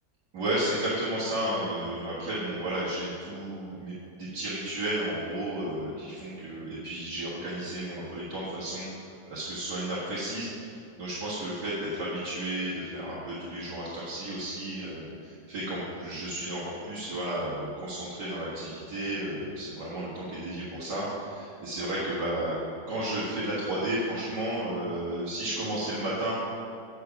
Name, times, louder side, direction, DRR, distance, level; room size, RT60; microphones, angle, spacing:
voice 1, 0.3-8.9 9.3-22.6 22.9-26.3, right 1 dB, 85° right, -10 dB, 2.4 m, -33 dB
9.3 x 6.6 x 5.9 m, 2.5 s
omnidirectional pair, 1.7 m